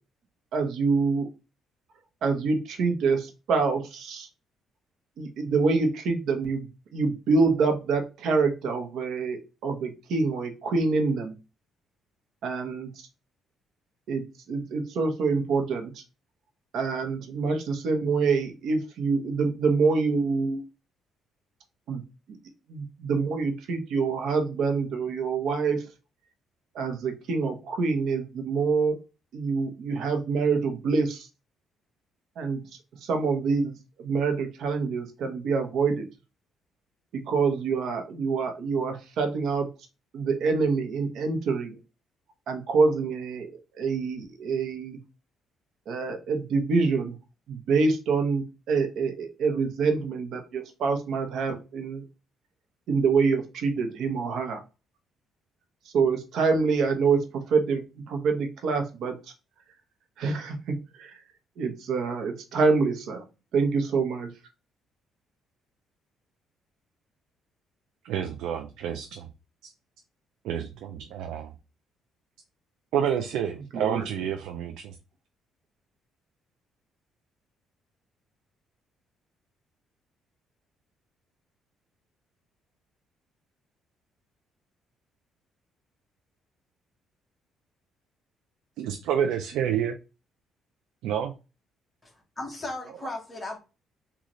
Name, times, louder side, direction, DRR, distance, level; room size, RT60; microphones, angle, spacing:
voice 1, 0.5-1.3 2.2-4.3 5.2-11.3 12.4-13.1 14.1-16.0 16.7-20.6 21.9-22.0 22.7-25.9 26.7-28.9 29.3-31.3 32.4-32.6 33.0-33.7 34.0-36.1 37.1-39.7 40.1-41.8 42.5-43.5 43.7-45.0 45.9-47.1 47.5-52.0 52.9-54.6 55.9-59.2 60.2-61.1 61.6-63.2 63.5-64.3 73.7-74.1, right 4 dB, 70° right, 0.9 m, -26 dB
voice 2, 68.0-69.3 69.6-69.7 70.4-71.5 72.9-75.0 88.8-90.0 91.0-91.3, right 9 dB, 85° right, 0.4 m, -29 dB
voice 3, 92.0-93.6, left 2 dB, 15° left, 1.2 m, -36 dB
3.8 x 2.4 x 3.0 m
cardioid pair, 120°, 0 cm